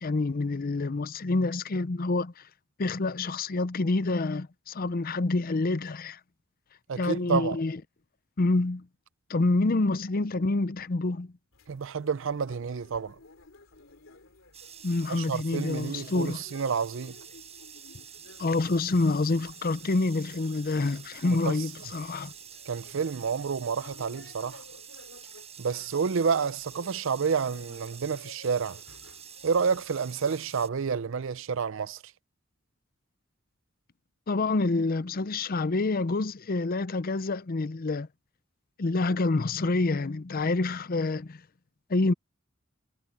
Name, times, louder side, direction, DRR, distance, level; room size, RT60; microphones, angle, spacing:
voice 1, 0.0-2.4 2.8-6.2 7.0-7.8 8.4-8.9 9.3-11.3 14.8-16.4 18.4-22.3 34.3-38.1 38.8-41.4 41.9-42.1, left 3 dB, 45° left, 0.6 m, -27 dB
voice 2, 6.9-7.6 11.7-13.1 15.1-17.1 21.2-21.6 22.7-24.6 25.6-28.8 29.4-32.0, right 6 dB, 70° right, 0.5 m, -29 dB
sound 1, 11.5-31.0, left 3 dB, 80° left, 3.2 m, -55 dB
sound 2, 14.5-30.7, right 8 dB, 30° right, 7.6 m, -48 dB
head